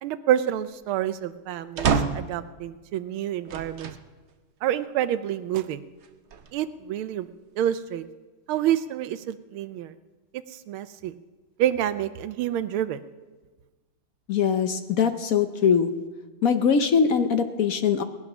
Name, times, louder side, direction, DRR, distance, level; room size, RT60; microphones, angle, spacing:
voice 1, 0.0-3.9 4.6-5.8 6.5-7.3 7.6-8.0 8.5-9.9 10.5-11.1 11.6-13.0, right 11 dB, 90° right, 13 dB, 1.6 m, -28 dB
sound 1, 1.8-2.4 3.5-4.0 4.7-4.8 6.0-6.8, right 6 dB, 65° right, 0.6 m, -27 dB
voice 2, 14.3-15.9 16.4-18.0, left 6 dB, 60° left, 8 dB, 0.9 m, -22 dB
19.5 x 10.5 x 6.1 m, 1.3 s
omnidirectional pair, 2.3 m